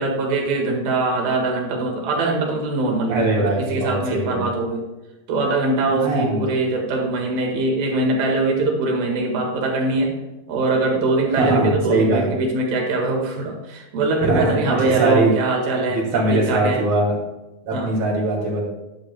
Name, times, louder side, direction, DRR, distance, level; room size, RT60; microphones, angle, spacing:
voice 1, 0.0-4.8 5.3-10.1 10.5-16.8 17.7-17.9, right 2 dB, 80° right, 1 dB, 3.5 m, -22 dB
voice 2, 3.1-4.4 5.9-6.5 11.3-12.3 14.2-15.4 15.9-17.2 17.6-18.6, right 2 dB, 40° right, -2 dB, 3.0 m, -21 dB
11.0 x 10.0 x 2.3 m, 1.0 s
omnidirectional pair, 4.2 m